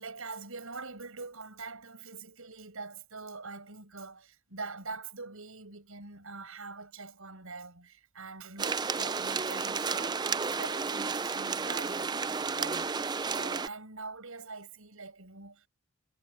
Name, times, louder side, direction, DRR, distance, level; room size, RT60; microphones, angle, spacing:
voice 1, 0.0-15.7, right 3 dB, 70° right, 5.4 m, -44 dB
sound 1, 8.6-13.7, right 5 dB, 20° right, 0.4 m, -32 dB
head